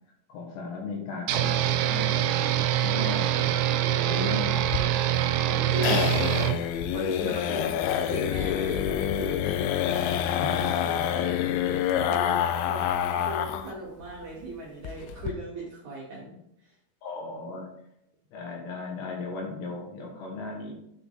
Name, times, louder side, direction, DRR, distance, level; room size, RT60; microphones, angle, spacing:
voice 1, 0.3-3.6 4.0-4.9 5.7-6.0 7.5-7.8 10.4-10.7 12.4-13.1 17.0-17.7 18.3-20.7, left 3 dB, 70° left, 0 dB, 3.3 m, -37 dB
sound 1, 1.3-6.6, right 11 dB, 85° right, 2.7 m, -25 dB
voice 2, 3.8-4.3 5.5-7.6 8.0-10.0 10.4-11.5 12.1-12.4 12.7-16.8, right 1 dB, 65° right, -5 dB, 1.8 m, -38 dB
sound 2, 4.6-13.7 14.0-14.1 14.4-14.5 14.8-15.3, left 10 dB, 90° left, 3.0 m, -27 dB
9.6 x 4.6 x 4.0 m, 0.79 s
omnidirectional pair, 5.3 m